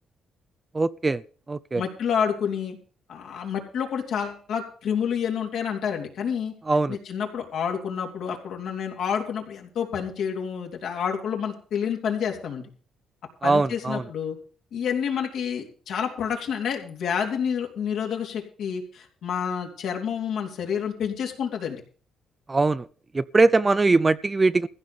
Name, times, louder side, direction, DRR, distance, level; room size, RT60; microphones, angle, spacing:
voice 1, 0.7-1.2 1.5-1.8 6.7-7.0 13.4-14.0 22.5-22.8 23.1-24.7, right 3 dB, 25° right, 0.6 m, -21 dB
voice 2, 1.7-2.8 3.1-6.5 6.9-12.7 13.4-14.4 14.7-21.8, left 7 dB, 75° left, 3.4 m, -29 dB
15.5 x 5.3 x 9.4 m
cardioid pair, 90°, 0 cm